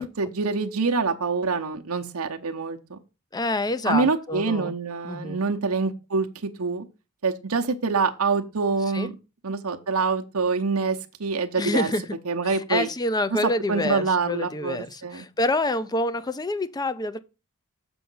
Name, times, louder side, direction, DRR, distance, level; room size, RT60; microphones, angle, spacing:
voice 1, 0.0-3.0 3.9-6.3 6.6-6.8 7.2-9.1 9.4-11.9 12.3-12.9 13.7-14.8 15.0-15.3, right 4 dB, 75° right, 0.9 m, -25 dB
voice 2, 3.3-4.7 5.0-5.4 8.9-9.1 11.5-12.2 12.4-17.2, left 2 dB, 20° left, 0.5 m, -27 dB
7.1 x 5.6 x 5.5 m
head